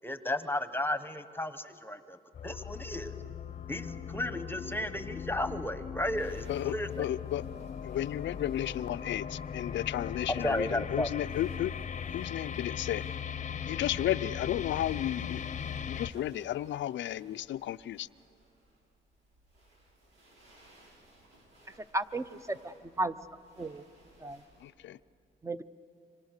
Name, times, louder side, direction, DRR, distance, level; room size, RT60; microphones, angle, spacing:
voice 1, 0.0-2.2 2.4-3.1 3.7-7.1 10.3-11.1, left 1 dB, 10° left, 11 dB, 1.1 m, -34 dB
sound 1, 2.3-16.1, left 7 dB, 35° left, 0.8 m, -39 dB
sound 2, 6.1-24.7, right 1 dB, 80° right, 6.9 m, -61 dB
voice 2, 6.5-7.4 7.8-11.7 12.1-13.0 13.6-18.1 24.6-25.0, left 12 dB, 70° left, 14 dB, 0.5 m, -33 dB
voice 3, 21.9-23.2 23.6-23.8 24.2-24.4 25.4-25.6, right 2 dB, 15° right, 13 dB, 0.8 m, -34 dB
27.0 x 25.0 x 6.6 m, 2.4 s
cardioid pair, 90°, 20 cm